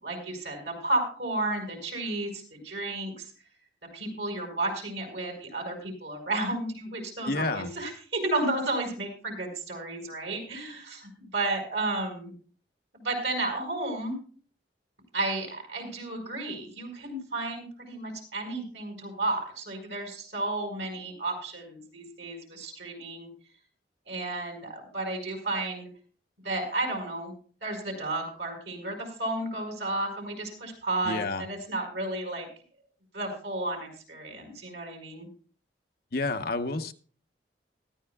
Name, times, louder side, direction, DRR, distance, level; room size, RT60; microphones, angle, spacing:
voice 1, 0.0-3.2 3.9-12.3 12.9-14.2 15.1-23.3 24.1-25.9 26.4-27.3 27.6-32.5 33.1-35.3, right 2 dB, 75° right, 1 dB, 5.3 m, -32 dB
voice 2, 7.3-7.7 31.0-31.5 36.1-36.9, left 3 dB, 55° left, 6 dB, 1.0 m, -29 dB
19.0 x 13.5 x 2.3 m, 0.41 s
head